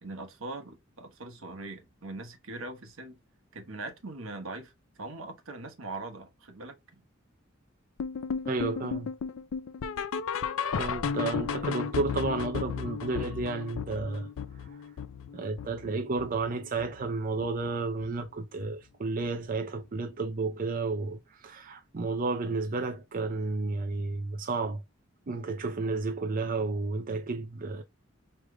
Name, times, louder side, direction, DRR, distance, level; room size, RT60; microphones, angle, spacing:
voice 1, 0.0-3.2 3.5-7.0, right 2 dB, 85° right, 1.1 m, -41 dB
sound 1, 8.0-17.1 17.4-17.7 18.0-18.1 18.6-18.7 19.2-19.3, left 6 dB, 85° left, 0.4 m, -34 dB
voice 2, 8.4-9.1 10.7-14.3 15.3-24.8 25.3-27.8, right 3 dB, 45° right, 0.5 m, -32 dB
4.8 x 3.2 x 2.2 m
head